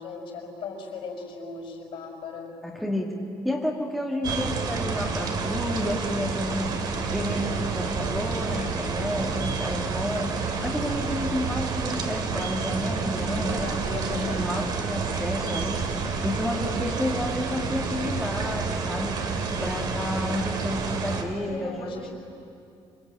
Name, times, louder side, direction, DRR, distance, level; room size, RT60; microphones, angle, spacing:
voice 1, 0.0-2.5 13.6-14.5 19.4-19.6 21.3-22.1, left 4 dB, 60° left, -3 dB, 6.0 m, -38 dB
voice 2, 2.6-13.7 14.1-22.1, left 1 dB, ahead, -3 dB, 2.2 m, -31 dB
sound 1, 4.2-21.2, right 4 dB, 45° right, 2.7 m, -29 dB
27.0 x 24.5 x 9.0 m, 2.6 s
cardioid pair, 180°, 10 cm